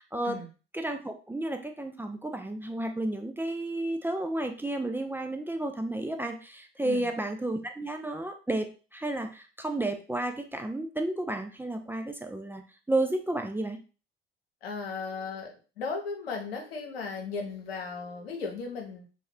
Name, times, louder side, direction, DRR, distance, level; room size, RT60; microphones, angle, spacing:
voice 1, 0.7-13.8, right 1 dB, 5° right, 5 dB, 0.4 m, -32 dB
voice 2, 14.6-15.5 15.8-19.1, left 4 dB, 85° left, 2 dB, 0.6 m, -36 dB
2.3 x 2.1 x 3.5 m, 0.34 s
hypercardioid pair, 55°, 29 cm